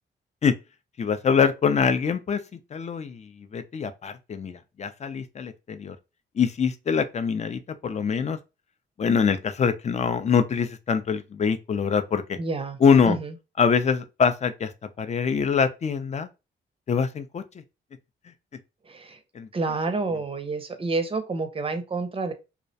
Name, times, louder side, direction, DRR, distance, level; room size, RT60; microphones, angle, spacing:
voice 1, 1.0-2.4 2.7-6.0 6.4-8.4 9.0-12.4 12.8-13.2 13.6-14.7 15.0-16.3 16.9-17.4 19.3-19.5, left 6 dB, 35° left, 0.4 m, -24 dB
voice 2, 12.4-12.8 13.0-13.3 18.8-19.2 19.5-22.3, right 3 dB, 30° right, 0.5 m, -29 dB
2.3 x 2.1 x 2.6 m
cardioid pair, 75°, 20 cm